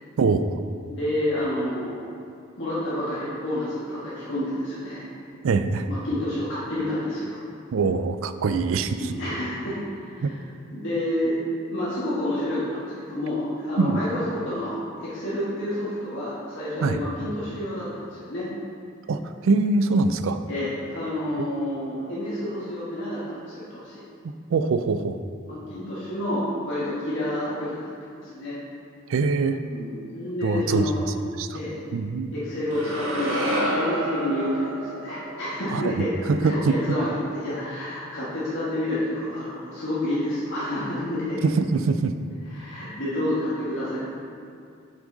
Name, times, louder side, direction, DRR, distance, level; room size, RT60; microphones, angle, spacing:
voice 1, 0.2-0.5 5.4-5.9 7.7-9.1 10.2-10.3 13.8-14.0 16.8-17.0 19.1-20.4 21.4-21.5 24.5-25.2 29.1-29.6 30.4-31.0 31.4-31.6 31.9-32.3 35.7-36.7 41.4-42.1, right 4 dB, 70° right, 10 dB, 0.4 m, -23 dB
voice 2, 0.9-2.0 2.6-5.0 5.9-7.4 8.9-9.8 10.0-10.3 10.7-11.3 11.7-18.5 20.5-24.0 25.5-28.6 29.7-31.0 31.5-31.8 32.3-41.4 42.5-44.0, left 1 dB, 60° left, -10 dB, 1.6 m, -29 dB
sound 1, 32.7-36.9, right 1 dB, 85° right, 1.6 m, -30 dB
7.3 x 6.1 x 3.9 m, 2.4 s
head